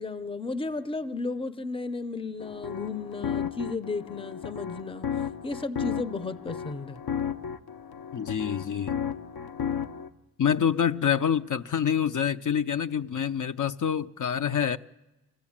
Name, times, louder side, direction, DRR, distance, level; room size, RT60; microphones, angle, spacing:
voice 1, 0.0-5.1 5.4-7.0, left 3 dB, 15° left, 14 dB, 0.7 m, -34 dB
sound 1, 2.4-10.1, left 7 dB, 75° left, 1.0 m, -34 dB
voice 2, 8.1-9.0 10.4-14.8, left 8 dB, 55° left, 9 dB, 0.7 m, -26 dB
25.0 x 15.0 x 8.7 m, 1.0 s
cardioid pair, 85°, 37 cm